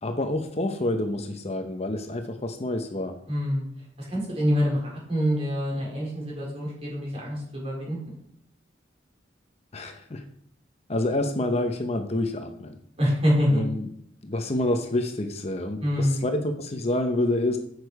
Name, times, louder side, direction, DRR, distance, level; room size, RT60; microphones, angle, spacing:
voice 1, 0.0-3.1 9.7-10.2 10.9-12.8 13.5-13.8 14.2-17.6, left 1 dB, 35° left, 6 dB, 0.8 m, -28 dB
voice 2, 3.3-3.6 4.0-8.0 13.0-13.6 15.8-16.2, equal, 30° right, -4 dB, 4.0 m, -25 dB
9.7 x 6.6 x 4.7 m, 0.71 s
head